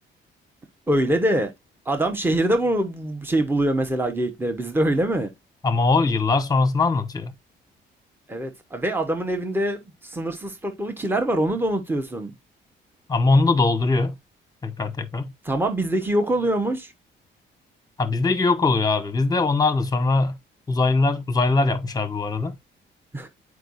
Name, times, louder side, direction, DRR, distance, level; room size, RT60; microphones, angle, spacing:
voice 1, 0.9-1.5 1.9-5.3 8.3-12.3 15.4-16.9 23.1-23.3, right 1 dB, 10° right, 1.1 m, -24 dB
voice 2, 5.6-7.3 13.1-14.1 14.6-15.3 18.0-20.4 20.7-22.5, left 3 dB, 20° left, 1.1 m, -21 dB
7.8 x 4.8 x 2.6 m
cardioid pair, 90°, 20 cm